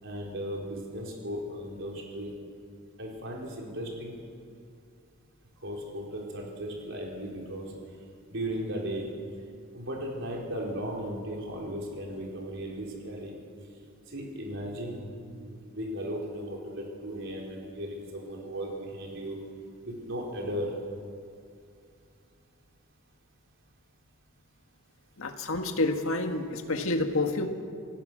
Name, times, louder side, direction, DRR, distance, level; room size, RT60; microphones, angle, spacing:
voice 1, 0.0-2.3 3.0-4.2 5.6-7.7 8.3-9.1 9.7-13.3 14.1-19.4 19.8-20.7, equal, 65° right, -1 dB, 4.4 m, -36 dB
voice 2, 25.2-27.5, left 2 dB, 85° left, 5 dB, 1.8 m, -28 dB
27.0 x 16.5 x 6.4 m, 2.4 s
head